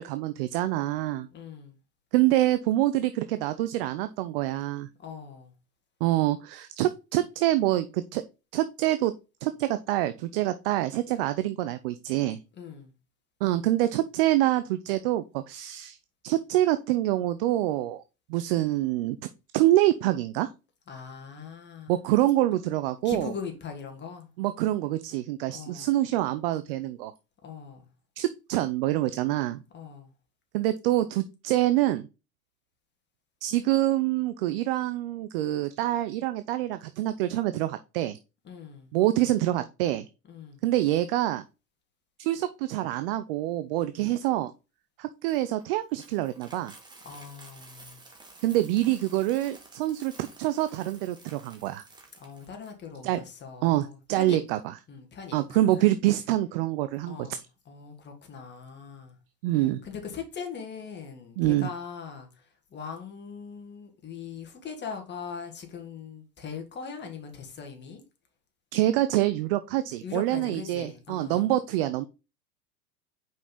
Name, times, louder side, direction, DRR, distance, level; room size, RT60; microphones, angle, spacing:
voice 1, 0.0-1.3 2.1-4.9 6.0-8.2 8.5-9.1 9.4-12.4 13.4-16.0 16.2-18.0 18.3-19.2 19.5-20.5 21.9-23.3 24.4-27.1 28.2-29.6 30.5-32.1 33.4-38.2 38.9-40.1 40.6-41.4 42.2-44.5 45.0-46.7 48.4-51.8 53.0-53.2 53.6-54.6 55.3-57.3 59.4-59.8 61.4-61.7 68.7-72.0, right 15 dB, 40° right, 0.4 m, -26 dB
voice 2, 1.3-1.8 5.0-5.5 12.6-12.9 20.9-22.0 23.0-24.3 25.5-25.9 27.4-27.8 29.7-30.1 38.4-38.9 40.3-40.6 47.0-48.0 52.2-54.4 54.9-55.7 57.0-57.4 57.7-59.2 59.8-68.0 70.0-71.5, left 6 dB, 20° left, 1.8 m, -40 dB
Coin (dropping), 45.3-52.7, right 3 dB, 10° right, 1.4 m, -52 dB
5.3 x 5.2 x 3.8 m
hypercardioid pair, 100°, 48 cm